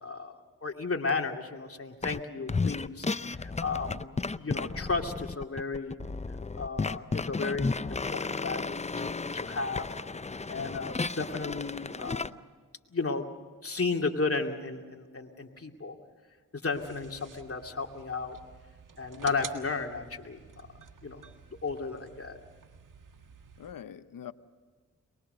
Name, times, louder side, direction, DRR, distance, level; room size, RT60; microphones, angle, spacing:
voice 1, 0.0-3.1 3.3-6.0 6.6-10.0 10.5-12.4 12.9-13.3 13.6-16.0 16.5-18.4 19.0-21.2 21.6-22.4, left 4 dB, 45° left, 3 dB, 2.5 m, -34 dB
sound 1, 2.0-2.2 2.5-12.3, left 4 dB, 20° left, 0.6 m, -33 dB
sound 2, 16.7-23.7, right 6 dB, 70° right, 1.7 m, -49 dB
voice 2, 23.6-24.3, left 9 dB, 85° left, 13 dB, 0.9 m, -45 dB
23.5 x 21.5 x 6.7 m, 1.5 s
cardioid pair, 50°, 33 cm